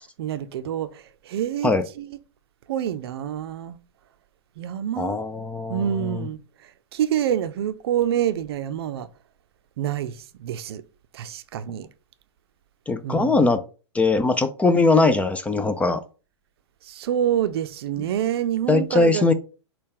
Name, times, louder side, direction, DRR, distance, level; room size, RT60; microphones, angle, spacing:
voice 1, 0.2-2.2 2.7-3.8 4.6-5.2 5.7-9.1 9.8-10.8 11.1-11.9 13.0-13.4 16.8-19.3, right 10 dB, 55° right, 0.5 m, -27 dB
voice 2, 5.0-6.3 12.9-13.6 13.9-16.0 18.7-19.3, left 3 dB, 10° left, 0.3 m, -20 dB
6.2 x 2.2 x 3.7 m
figure-of-eight pair, 105°, 15 cm